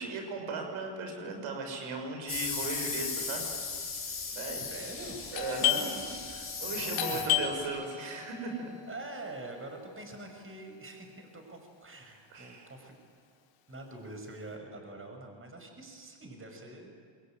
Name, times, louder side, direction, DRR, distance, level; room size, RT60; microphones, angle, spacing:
voice 1, 0.0-3.4 4.3-4.7 5.3-6.0 6.6-8.7 12.3-12.7, right 3 dB, 70° right, 4 dB, 5.8 m, -37 dB
sound 1, 2.3-7.6, left 4 dB, 25° left, 4.6 m, -37 dB
voice 2, 4.6-5.2 5.6-6.3 6.7-7.3 8.3-8.6 8.9-13.0 13.7-16.9, right 2 dB, 25° right, 4 dB, 6.4 m, -45 dB
Doorbell, 5.3-10.8, left 11 dB, 75° left, 4.8 m, -34 dB
27.5 x 22.5 x 9.4 m, 2.3 s
cardioid pair, 90°, 49 cm